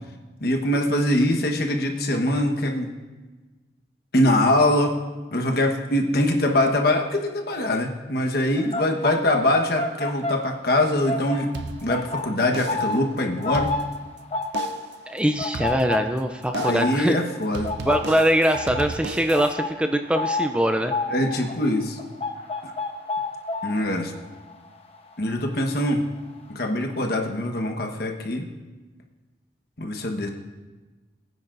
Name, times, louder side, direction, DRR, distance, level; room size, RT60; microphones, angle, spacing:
voice 1, 0.4-2.9 4.1-5.0 5.3-11.5 11.8-13.8 16.5-17.7 21.1-22.0 22.6-22.7 23.6-24.1 25.2-26.0 26.5-28.5 29.8-30.3, left 1 dB, 55° left, 3 dB, 1.2 m, -23 dB
sound 1, 8.6-10.8 11.0-25.9 26.2-26.5, left 2 dB, 35° left, 0.9 m, -31 dB
sound 2, 11.5-12.2 12.5-13.0 13.4-14.2 14.5-15.0 15.5-16.2 16.5-17.0 17.5-19.5, right 3 dB, 70° right, 0.6 m, -35 dB
voice 2, 15.1-17.2 17.9-20.9, equal, 5° right, 6 dB, 0.4 m, -22 dB
21.5 x 9.7 x 2.6 m, 1.2 s
head